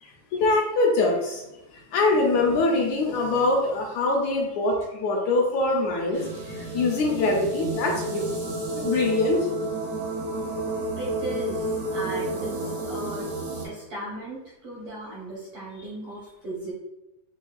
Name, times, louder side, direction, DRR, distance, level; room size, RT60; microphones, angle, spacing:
voice 1, 0.0-1.4 1.7-8.3 8.7-9.5, left 2 dB, 80° left, 0 dB, 1.8 m, -24 dB
sound 1, 6.1-13.7, right 2 dB, 90° right, 2.7 m, -30 dB
voice 2, 11.0-13.3 13.6-16.7, right 2 dB, 70° right, -7 dB, 1.3 m, -37 dB
6.3 x 2.3 x 2.3 m, 0.95 s
omnidirectional pair, 3.6 m